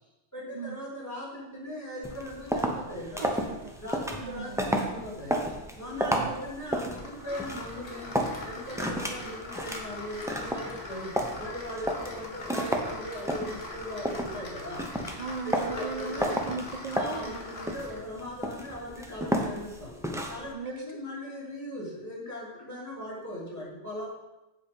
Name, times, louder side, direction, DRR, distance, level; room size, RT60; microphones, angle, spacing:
voice 1, 0.3-3.3 3.8-5.3 5.7-8.1 8.4-15.1 15.4-16.3 16.9-20.0 20.3-24.0, left 1 dB, 15° left, -8 dB, 2.9 m, -39 dB
sound 1, 2.0-20.5, equal, 5° right, 0.5 m, -33 dB
voice 2, 3.2-3.7 4.2-4.7 6.1-6.4 15.2-17.5 20.5-20.8, right 5 dB, 70° right, 5 dB, 0.4 m, -38 dB
sound 2, 7.0-18.1, left 2 dB, 45° left, 1.5 m, -42 dB
8.2 x 5.1 x 5.2 m, 1.0 s
omnidirectional pair, 1.3 m